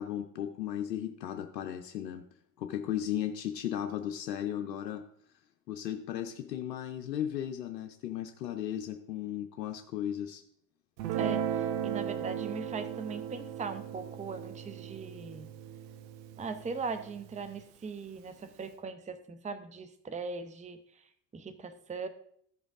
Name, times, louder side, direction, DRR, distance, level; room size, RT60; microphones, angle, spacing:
voice 1, 0.0-2.2 2.6-5.0 5.7-10.4, left 10 dB, 85° left, 6 dB, 0.6 m, -35 dB
Guitar, 11.0-17.6, right 9 dB, 80° right, 0.6 m, -36 dB
voice 2, 11.2-15.5 16.4-21.0 21.3-22.1, right 4 dB, 15° right, 11 dB, 0.7 m, -40 dB
14.0 x 5.1 x 3.6 m, 0.68 s
figure-of-eight pair, 55°, 49 cm